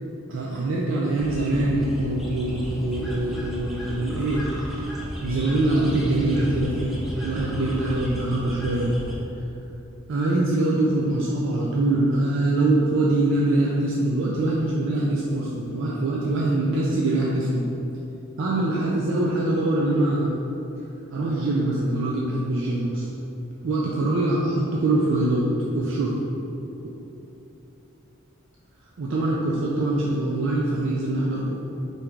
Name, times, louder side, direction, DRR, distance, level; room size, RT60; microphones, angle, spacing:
voice 1, 0.3-4.5 5.2-8.9 10.1-17.6 18.4-20.3 21.1-23.0 23.6-25.5 25.7-26.2 29.0-31.5, right 2 dB, 65° right, -4 dB, 0.4 m, -23 dB
sound 1, 1.2-9.2, equal, ahead, 0.5 m, -34 dB
4.5 x 2.7 x 3.6 m, 2.9 s
head